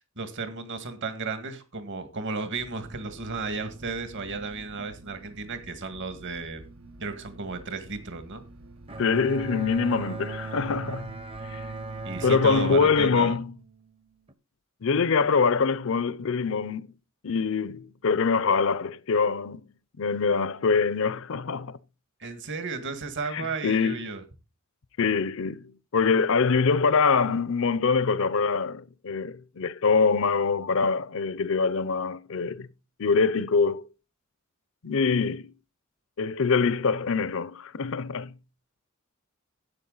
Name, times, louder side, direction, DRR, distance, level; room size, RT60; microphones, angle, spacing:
voice 1, 0.0-6.6 7.0-8.4 12.0-13.4 22.2-24.2, right 4 dB, 60° right, 1.9 m, -34 dB
sound 1, 2.6-13.1, right 2 dB, 80° right, 1.1 m, -49 dB
Bowed string instrument, 8.9-14.3, right 3 dB, 25° right, 0.8 m, -38 dB
voice 2, 9.0-11.1 11.5-11.6 12.2-13.5 14.8-16.9 17.2-19.6 20.0-21.8 23.3-24.0 25.0-32.7 33.0-33.9 34.8-35.5 36.2-38.3, left 5 dB, 65° left, 0.6 m, -24 dB
12.5 x 8.9 x 3.9 m
head